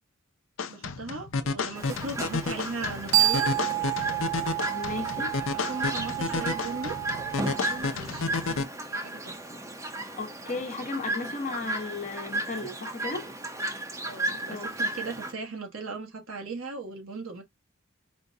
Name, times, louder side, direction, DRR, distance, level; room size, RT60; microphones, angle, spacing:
sound 1, 0.6-8.6, left 4 dB, 70° left, 0.6 m, -32 dB
voice 1, 0.7-3.5 4.9-5.1 5.5-7.0 7.5-9.6 14.0-17.4, right 3 dB, 85° right, 1.3 m, -38 dB
Chirp tweet, 1.7-15.3, right 1 dB, 15° right, 0.8 m, -35 dB
sound 2, 2.7-7.8, right 14 dB, 55° right, 0.6 m, -29 dB
voice 2, 4.7-5.3 10.2-13.3 14.5-14.7, left 3 dB, 40° left, 1.1 m, -35 dB
5.0 x 2.2 x 2.7 m
head